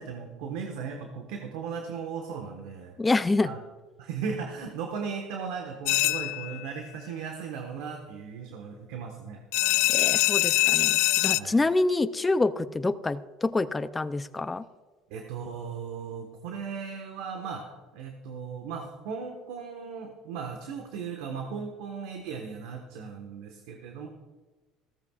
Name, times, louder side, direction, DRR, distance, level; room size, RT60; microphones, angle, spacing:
voice 1, 0.0-2.9 3.4-3.6 4.0-9.4 9.7-9.8 11.3-11.7 15.1-24.1, right 6 dB, 85° right, 3 dB, 1.4 m, -37 dB
voice 2, 3.0-3.5 9.9-14.6, left 2 dB, 15° left, 12 dB, 0.5 m, -27 dB
sound 1, 5.9-6.7 9.5-11.4, left 21 dB, 80° left, 0.3 m, -23 dB
15.5 x 14.0 x 2.4 m, 1.3 s
cardioid pair, 130°, 0 cm